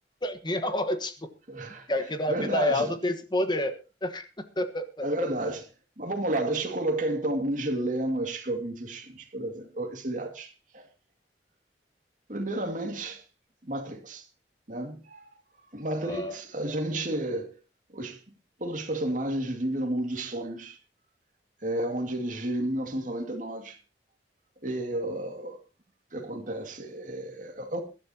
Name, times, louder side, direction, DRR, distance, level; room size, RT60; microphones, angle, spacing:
voice 1, 0.2-1.2 1.9-4.3 4.6-5.3 15.9-16.4, left 1 dB, 25° left, 1.3 m, -29 dB
voice 2, 1.5-1.9 2.3-2.9 5.0-5.6 6.0-10.9 12.3-13.2 13.6-14.3 14.7-15.3 15.7-17.6 17.9-18.2 18.6-20.8 21.6-23.8 24.6-25.6 26.1-27.8, right 1 dB, 45° right, 2.3 m, -31 dB
22.0 x 12.5 x 2.9 m
head